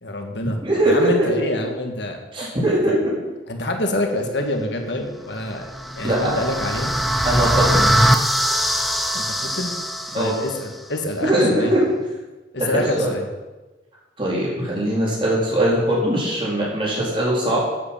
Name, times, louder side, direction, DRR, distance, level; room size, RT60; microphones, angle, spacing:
voice 1, 0.0-0.6 0.8-2.2 2.9-3.0 3.5-5.7 6.0-6.9 9.1-9.7 10.2-11.8 12.5-13.3, left 1 dB, 75° left, 3 dB, 1.9 m, -26 dB
voice 2, 0.6-1.5 2.3-3.0 6.0-6.3 7.2-8.0 10.1-10.3 11.2-11.8 12.6-13.1 14.2-17.6, right 1 dB, 30° right, -5 dB, 4.2 m, -21 dB
sound 1, 5.5-10.6, equal, ahead, 0.7 m, -21 dB
11.0 x 9.1 x 7.4 m, 1.2 s
head